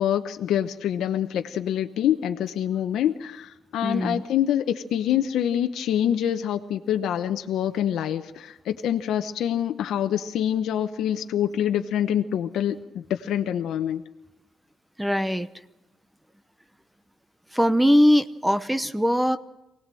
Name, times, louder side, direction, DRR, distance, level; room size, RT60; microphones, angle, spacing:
voice 1, 0.0-14.0, left 10 dB, 80° left, 6 dB, 0.9 m, -26 dB
voice 2, 3.8-4.2 15.0-15.5 17.5-19.4, equal, 5° right, 11 dB, 0.8 m, -21 dB
23.5 x 18.5 x 7.6 m, 0.93 s
cardioid pair, 90°, 0 cm